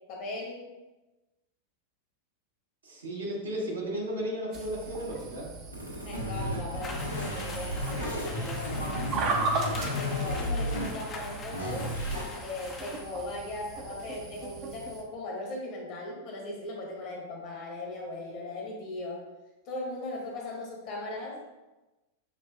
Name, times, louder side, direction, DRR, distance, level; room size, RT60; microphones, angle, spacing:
voice 1, 0.1-0.7 6.0-9.0 9.6-19.2 19.7-21.5, left 2 dB, 40° left, -1 dB, 1.1 m, -38 dB
voice 2, 2.8-5.5, equal, 70° right, -3 dB, 1.1 m, -34 dB
sound 1, 4.5-15.0, right 3 dB, 35° right, 0.6 m, -37 dB
sound 2, 5.7-10.9 11.5-12.2, left 1 dB, 90° left, 1.0 m, -33 dB
sound 3, 6.8-13.0, left 3 dB, 25° left, 0.5 m, -43 dB
6.1 x 2.7 x 2.4 m, 1.1 s
figure-of-eight pair, 90°, 0 cm